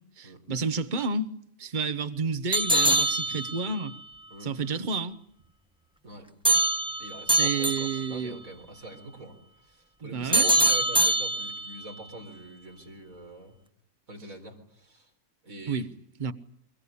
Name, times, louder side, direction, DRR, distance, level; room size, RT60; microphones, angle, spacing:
voice 1, 0.2-1.3 1.6-4.0 4.4-5.2 7.3-8.4 10.0-10.5 15.7-15.9 16.2-16.3, right 4 dB, 35° right, 1.3 m, -30 dB
sound 1, 2.5-3.9 6.5-8.2 10.3-11.8, right 1 dB, 5° right, 1.2 m, -24 dB
voice 2, 7.0-13.6 14.1-15.1 15.4-15.9, right 2 dB, 90° right, 4.8 m, -44 dB
24.0 x 22.0 x 8.7 m
omnidirectional pair, 1.4 m